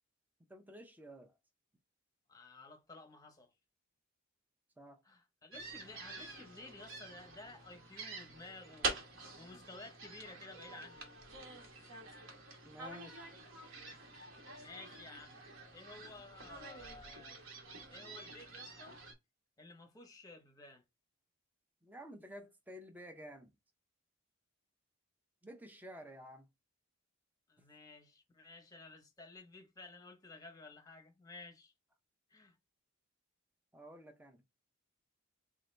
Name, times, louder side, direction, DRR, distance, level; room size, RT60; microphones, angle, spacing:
voice 1, 0.4-1.3 4.8-5.0 12.6-13.3 21.8-23.5 25.4-26.5 33.7-34.4, equal, 10° right, 0.5 m, -52 dB
voice 2, 2.3-3.5 5.0-11.1 11.8-12.0 14.5-15.4 15.7-17.4 17.9-19.0 19.6-20.8 27.5-31.7 32.3-32.5, left 3 dB, 15° left, 0.8 m, -54 dB
sound 1, 5.5-19.1, right 3 dB, 60° right, 1.0 m, -46 dB
3.6 x 2.8 x 3.2 m
head